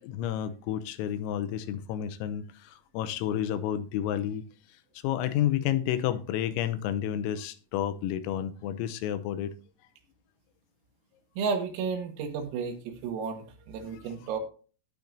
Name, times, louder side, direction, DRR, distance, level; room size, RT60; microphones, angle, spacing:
voice 1, 0.0-4.4 5.0-9.5 13.9-14.0, left 11 dB, 85° left, 3.5 m, -30 dB
voice 2, 11.4-14.4, right 5 dB, 80° right, 4.4 m, -32 dB
18.0 x 6.9 x 2.7 m
omnidirectional pair, 6.0 m